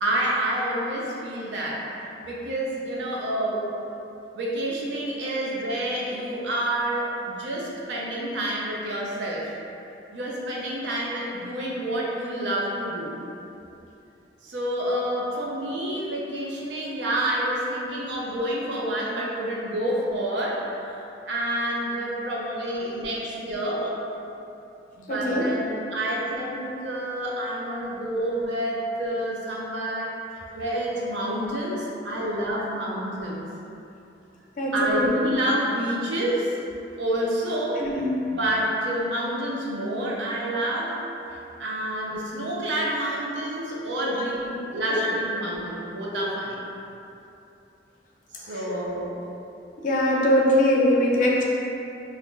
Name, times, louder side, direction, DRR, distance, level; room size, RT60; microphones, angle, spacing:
voice 1, 0.0-1.9 2.2-3.6 4.3-9.5 10.1-13.2 14.4-21.0 21.3-23.9 25.0-30.1 30.5-33.5 34.7-36.6 37.0-37.9 38.3-41.0 41.3-46.6 48.3-49.2, right 1 dB, 75° right, -3 dB, 0.5 m, -28 dB
voice 2, 22.4-23.1 23.6-23.9 25.1-25.8 26.1-26.6 32.2-32.3 34.6-35.1 37.8-38.3 42.0-42.1 44.1-44.2 44.9-45.1 46.1-46.3 48.4-48.8 49.8-51.4, left 1 dB, 45° left, -2 dB, 0.4 m, -24 dB
2.6 x 2.5 x 3.5 m, 2.8 s
head